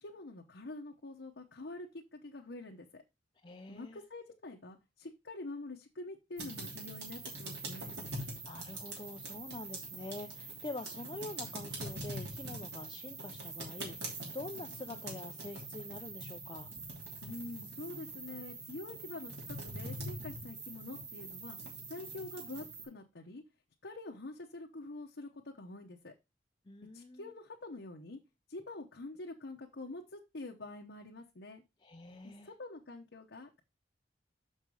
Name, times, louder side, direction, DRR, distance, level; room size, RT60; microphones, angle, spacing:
voice 1, 0.0-1.9 2.1-3.0 3.7-8.0 17.2-21.6 21.9-23.4 23.8-26.1 26.9-28.2 28.5-31.6 32.2-33.6, left 2 dB, 75° left, 0 dB, 1.0 m, -46 dB
voice 2, 3.4-4.0 8.4-16.7 26.7-27.3 31.8-32.5, left 2 dB, 25° left, 5 dB, 0.5 m, -46 dB
sound 1, 6.4-22.8, right 2 dB, 70° right, 3.2 m, -44 dB
6.5 x 5.6 x 4.8 m, 0.24 s
head